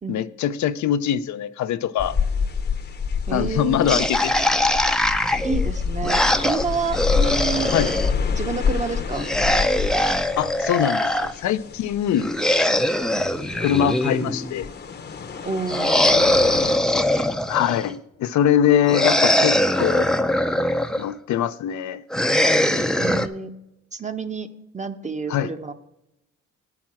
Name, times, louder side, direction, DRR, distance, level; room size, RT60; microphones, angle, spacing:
voice 1, 0.1-2.2 3.3-4.3 7.7-7.9 10.4-12.3 13.6-14.7 17.5-20.1 21.0-22.0 25.3-25.5, left 10 dB, 70° left, 0.5 m, -22 dB
sound 1, 2.0-16.8, left 6 dB, 35° left, 0.8 m, -28 dB
voice 2, 3.3-4.0 5.4-7.7 8.3-9.3 15.4-16.6 23.0-23.5 23.9-24.5 24.7-25.7, right 4 dB, 25° right, 0.9 m, -29 dB
sound 2, 3.8-8.1 9.1-11.3 12.2-14.5 15.7-17.9 18.9-21.1 22.1-23.3, left 1 dB, ahead, 0.5 m, -21 dB
8.6 x 5.9 x 7.4 m
cardioid pair, 90°, 30 cm